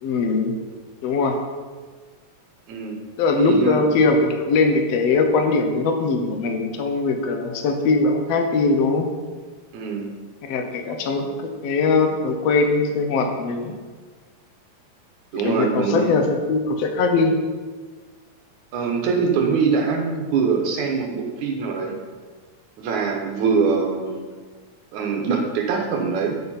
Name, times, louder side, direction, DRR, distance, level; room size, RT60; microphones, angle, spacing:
voice 1, 0.0-0.6 1.0-1.4 3.2-9.1 10.4-13.8 15.3-17.4, left 3 dB, 65° left, 4 dB, 1.7 m, -21 dB
voice 2, 2.7-3.0 3.4-3.8 9.7-10.1 15.3-16.1 18.7-22.0 22.8-24.2 24.9-26.4, right 5 dB, 70° right, 2 dB, 2.2 m, -23 dB
9.3 x 8.5 x 4.3 m, 1.5 s
omnidirectional pair, 4.0 m